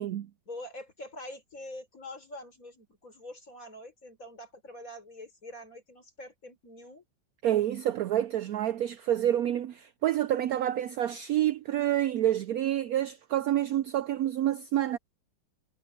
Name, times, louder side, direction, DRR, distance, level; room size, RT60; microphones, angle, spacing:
voice 1, 0.5-7.0, left 1 dB, 40° left, 6.1 m, -45 dB
voice 2, 7.4-15.0, right 12 dB, 85° right, 0.8 m, -28 dB
omnidirectional pair, 2.1 m